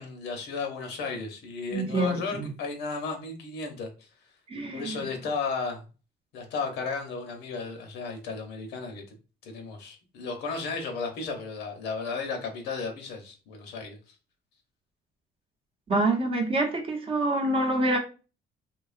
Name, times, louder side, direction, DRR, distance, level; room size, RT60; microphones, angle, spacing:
voice 1, 0.0-4.1 4.7-5.8 6.3-9.0 9.4-14.0, left 4 dB, 85° left, 0.8 m, -34 dB
voice 2, 1.7-2.5 4.5-5.0 15.9-18.0, right 2 dB, 35° right, 0.7 m, -26 dB
2.8 x 2.3 x 2.4 m
cardioid pair, 110°, 17 cm